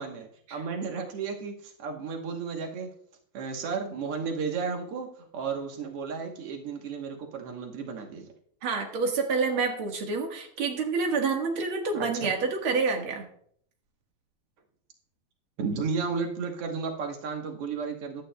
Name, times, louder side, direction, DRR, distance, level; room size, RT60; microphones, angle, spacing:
voice 1, 0.0-2.9 3.3-8.3 11.9-12.3 15.6-18.2, right 5 dB, 90° right, 2 dB, 1.2 m, -33 dB
voice 2, 8.6-13.3, right 4 dB, 55° right, 2 dB, 1.6 m, -28 dB
16.0 x 11.5 x 2.2 m, 0.64 s
omnidirectional pair, 4.4 m